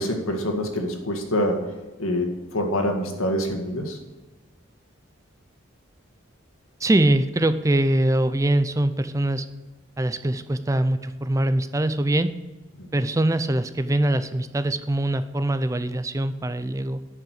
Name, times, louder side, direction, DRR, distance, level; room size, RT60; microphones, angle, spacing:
voice 1, 0.0-1.7 2.0-4.0 12.8-12.9, equal, 90° left, 3 dB, 2.0 m, -26 dB
voice 2, 6.8-9.5 10.0-12.3 12.9-17.0, right 1 dB, 15° right, 12 dB, 0.4 m, -23 dB
11.0 x 5.7 x 7.7 m, 1.2 s
head